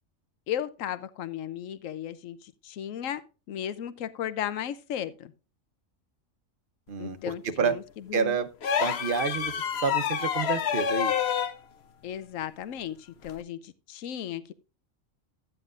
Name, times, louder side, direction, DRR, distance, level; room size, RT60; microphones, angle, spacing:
voice 1, 0.5-5.3 7.0-7.8 8.1-8.4 12.0-14.5, left 10 dB, 80° left, 1.1 m, -35 dB
voice 2, 6.9-7.8 8.1-8.5 8.8-11.1, right 6 dB, 45° right, 0.9 m, -29 dB
sound 1, 8.6-11.6 13.2-13.4, left 8 dB, 60° left, 0.9 m, -28 dB
13.0 x 9.2 x 2.5 m
omnidirectional pair, 1.4 m